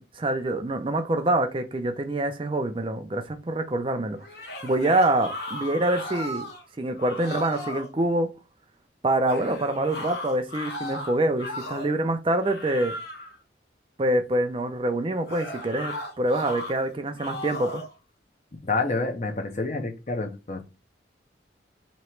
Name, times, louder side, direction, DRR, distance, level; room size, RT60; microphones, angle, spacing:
voice 1, 0.0-4.2 4.6-6.4 6.8-8.3 9.0-12.9 14.0-17.8, right 1 dB, 30° right, 0.4 m, -25 dB
sound 1, 4.2-6.6 7.0-7.9 9.3-12.0 12.4-13.4 15.3-16.7 17.2-17.9, left 1 dB, 60° left, 1.1 m, -36 dB
voice 2, 18.6-20.6, left 3 dB, 40° left, 0.8 m, -28 dB
3.1 x 3.0 x 4.4 m
head